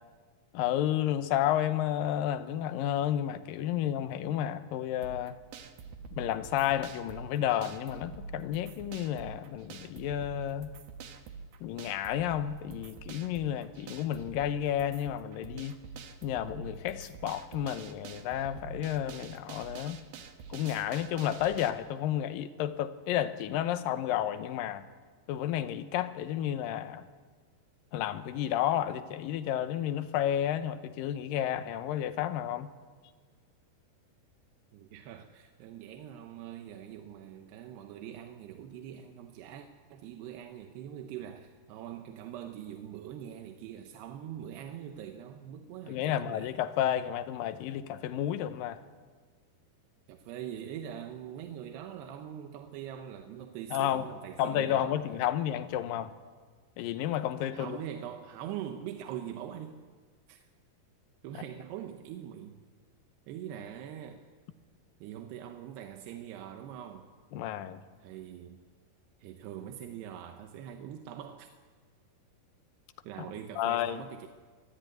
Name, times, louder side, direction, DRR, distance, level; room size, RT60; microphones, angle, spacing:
voice 1, 0.5-5.4 6.1-10.7 11.6-15.8 16.2-20.0 20.5-24.8 25.3-27.0 27.9-32.7 45.9-48.8 53.7-54.1 54.4-56.1 56.8-57.8 61.3-61.4 67.3-67.8 73.6-74.0, left 11 dB, 75° left, 11 dB, 2.3 m, -31 dB
sound 1, 5.0-21.7, right 5 dB, 70° right, 2.9 m, -46 dB
voice 2, 34.7-46.5 50.1-55.0 57.5-59.8 60.3-60.5 61.2-62.6 63.3-64.2 65.0-67.1 68.0-68.6 69.2-71.5 73.0-74.3, right 10 dB, 85° right, 5 dB, 3.0 m, -43 dB
24.5 x 13.5 x 9.0 m, 1.5 s
omnidirectional pair, 4.6 m